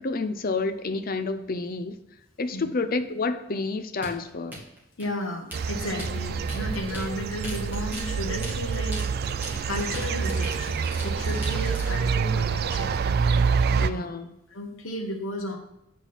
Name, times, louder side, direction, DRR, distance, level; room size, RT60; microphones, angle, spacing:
voice 1, 0.0-2.0 2.4-4.6 13.8-14.3, left 3 dB, 45° left, 10 dB, 0.6 m, -29 dB
sound 1, 4.0-12.0, equal, 10° right, 2.3 m, -40 dB
voice 2, 5.0-9.0 9.6-12.9 13.7-14.1 14.5-15.6, left 1 dB, 70° left, 0 dB, 1.2 m, -34 dB
sound 2, 5.5-13.9, right 5 dB, 50° right, 0.3 m, -27 dB
9.0 x 4.2 x 5.9 m, 0.83 s
head